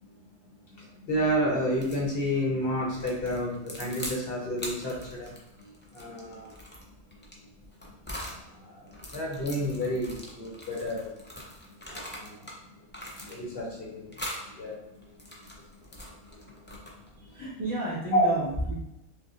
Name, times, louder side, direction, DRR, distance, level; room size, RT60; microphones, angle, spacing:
voice 1, 0.7-5.3 5.6-6.5 8.6-11.1 11.9-12.5 13.1-14.2 14.5-15.0 16.3-17.0 18.1-18.3, equal, 55° left, -3 dB, 1.0 m, -30 dB
sound 1, 1.7-2.1 2.9-4.2 4.6-8.4 8.9-12.6 12.9-13.7 14.1-14.5 15.0-17.1, left 1 dB, 15° left, 0.3 m, -42 dB
voice 2, 17.2-18.7, right 1 dB, 35° right, -7 dB, 1.3 m, -32 dB
5.1 x 2.4 x 2.4 m, 0.89 s
omnidirectional pair, 1.2 m